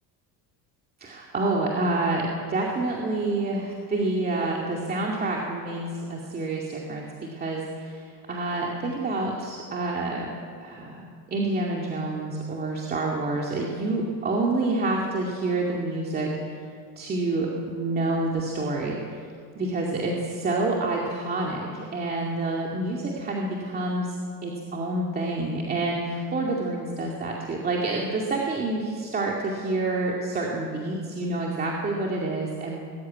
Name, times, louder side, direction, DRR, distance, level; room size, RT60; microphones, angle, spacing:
voice 1, 1.0-10.3 10.6-11.0 11.3-16.3 17.0-19.2 19.6-24.2 24.4-32.8, right 2 dB, 25° right, -2 dB, 2.4 m, -28 dB
20.5 x 16.5 x 9.5 m, 2.2 s
cardioid pair, 165°, 40 cm